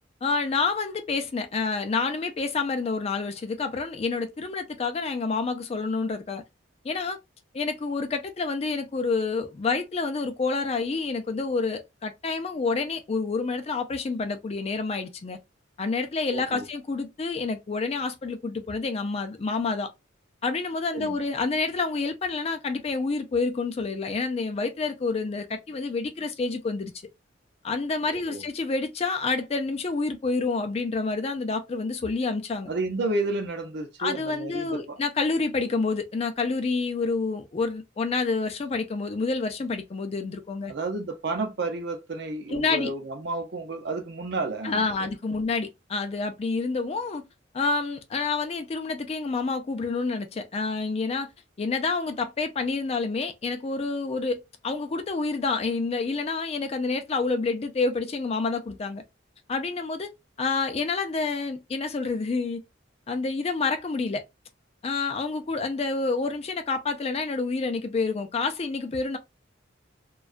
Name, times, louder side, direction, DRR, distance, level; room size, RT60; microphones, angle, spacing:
voice 1, 0.2-6.4 6.8-7.2 7.5-15.4 15.8-19.9 20.4-26.9 27.6-32.7 34.0-40.7 42.5-42.9 44.6-47.2 47.5-51.3 51.6-59.0 59.5-60.1 60.4-62.6 63.1-64.2 64.8-69.2, left 4 dB, 35° left, 0.4 m, -28 dB
voice 2, 16.3-16.7 20.9-21.2 28.0-28.4 32.7-35.0 40.7-45.2, right 2 dB, 60° right, 0.6 m, -31 dB
2.2 x 2.2 x 2.4 m
head